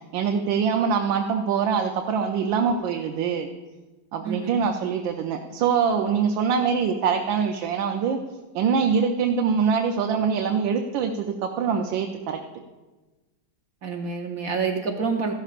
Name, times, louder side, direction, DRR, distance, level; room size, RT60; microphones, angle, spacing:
voice 1, 0.1-3.5 4.1-8.2 8.5-12.4, right 6 dB, 85° right, 3 dB, 1.4 m, -24 dB
voice 2, 4.2-4.6 13.8-15.3, right 5 dB, 60° right, 3 dB, 1.0 m, -27 dB
15.0 x 12.0 x 2.5 m, 1.2 s
omnidirectional pair, 2.0 m